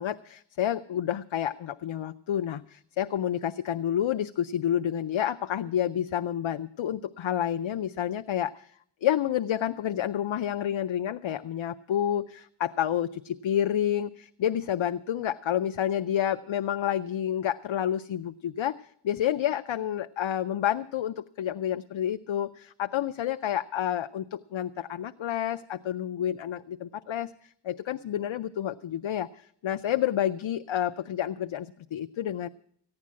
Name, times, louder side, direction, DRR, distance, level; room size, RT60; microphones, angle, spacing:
voice 1, 0.0-8.7 9.0-18.8 19.0-32.5, left 10 dB, 75° left, 9 dB, 0.5 m, -29 dB
15.0 x 9.7 x 7.5 m, 0.65 s
wide cardioid pair, 65°, 46 cm